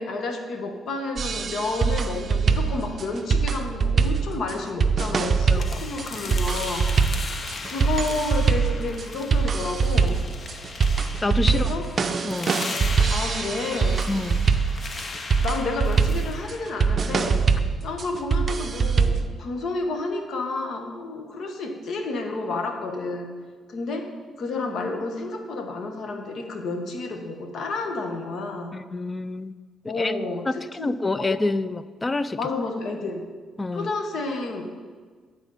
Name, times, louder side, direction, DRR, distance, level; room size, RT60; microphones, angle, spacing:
voice 1, 0.0-6.9 7.6-10.2 11.5-11.8 13.1-14.0 15.4-17.4 17.8-23.3 23.7-24.1 24.4-28.8 29.8-31.3 32.4-33.3 33.7-34.6, left 3 dB, 65° left, 4 dB, 1.1 m, -30 dB
sound 1, 1.2-19.3, right 5 dB, 45° right, 0.5 m, -23 dB
sound 2, 5.6-17.5, left 3 dB, 40° left, 0.7 m, -37 dB
voice 2, 11.2-11.7 12.0-12.6 14.1-14.5 28.7-29.5 30.0-30.1 30.5-32.4 33.6-33.9, left 2 dB, 20° left, 14 dB, 0.3 m, -27 dB
9.7 x 4.1 x 5.3 m, 1.5 s
cardioid pair, 90°, 0 cm